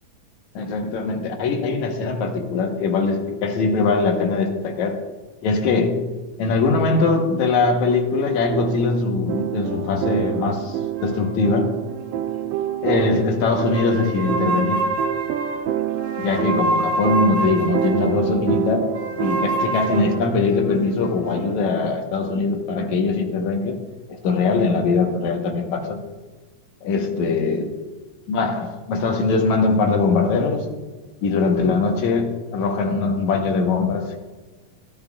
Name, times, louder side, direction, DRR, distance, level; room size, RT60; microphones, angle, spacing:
voice 1, 0.5-5.0 5.4-6.0 6.4-11.8 12.8-14.9 16.2-18.9 19.2-23.8 24.1-26.0 26.8-27.7 28.3-30.7 31.2-34.2, left 4 dB, 75° left, 2.5 m, -21 dB
sound 1, 8.2-20.5, right 13 dB, 80° right, 1.4 m, -28 dB
sound 2, 11.0-13.0 13.4-18.2 18.9-21.5, right 1 dB, 60° right, 1.2 m, -28 dB
16.0 x 10.5 x 2.4 m
omnidirectional pair, 3.4 m